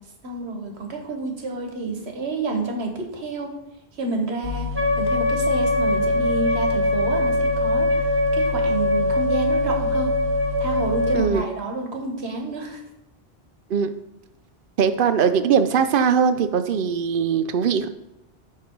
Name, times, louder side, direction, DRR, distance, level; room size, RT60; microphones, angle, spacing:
voice 1, 0.2-3.5 4.0-4.7 5.0-10.1 10.6-12.8, right 3 dB, 80° right, 3 dB, 1.4 m, -29 dB
sound 1, 4.4-11.2, left 3 dB, 35° left, 0.5 m, -31 dB
Wind instrument woodwind instrument, 4.7-11.3, left 1 dB, 15° right, 0.8 m, -22 dB
voice 2, 11.1-11.4 13.7-13.9 14.8-17.9, right 7 dB, 60° right, 10 dB, 0.7 m, -20 dB
10.0 x 3.4 x 4.5 m, 0.87 s
omnidirectional pair, 1.1 m